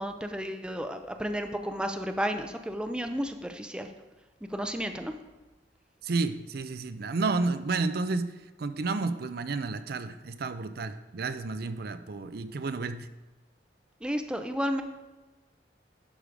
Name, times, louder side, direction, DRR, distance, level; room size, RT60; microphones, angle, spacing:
voice 1, 0.0-3.9 4.5-5.2 14.0-14.8, equal, 5° right, 6 dB, 0.5 m, -32 dB
voice 2, 6.0-13.1, right 3 dB, 60° right, 10 dB, 0.5 m, -31 dB
11.5 x 4.9 x 5.1 m, 1.1 s
head